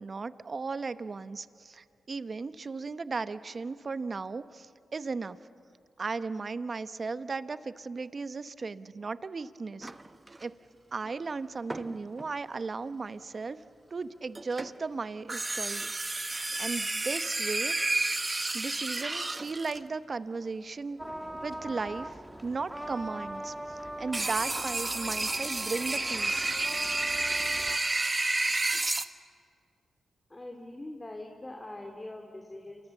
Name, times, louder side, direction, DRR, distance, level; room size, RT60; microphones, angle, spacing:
voice 1, 0.0-5.4 6.0-9.9 10.4-10.6 10.9-13.6 13.9-17.7 18.5-21.0 21.3-26.5, right 4 dB, 50° right, 13 dB, 0.9 m, -36 dB
sound 1, 9.8-10.4 11.7-12.3 14.4-14.8 15.3-19.8 24.1-29.1, right 2 dB, 30° right, 1.1 m, -31 dB
sound 2, 21.0-27.8, right 1 dB, 10° right, 1.6 m, -41 dB
voice 2, 30.3-32.9, left 1 dB, 25° left, 3 dB, 2.7 m, -43 dB
28.0 x 24.0 x 7.2 m, 2.3 s
supercardioid pair, 45°, 0 cm